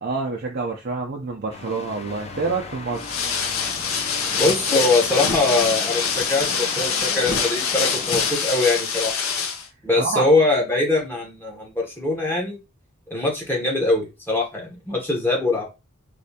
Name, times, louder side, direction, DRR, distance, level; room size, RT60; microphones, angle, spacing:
voice 1, 0.0-3.3 6.8-6.9 9.9-10.2, right 4 dB, 45° right, 0.5 m, -27 dB
sound 1, 1.5-8.3, left 2 dB, 30° left, 0.5 m, -37 dB
sound 2, 3.0-9.7, left 6 dB, 85° left, 0.8 m, -25 dB
voice 2, 4.3-9.1 9.8-12.6 13.1-15.6, left 2 dB, 10° left, 0.9 m, -22 dB
3.2 x 2.7 x 2.8 m
head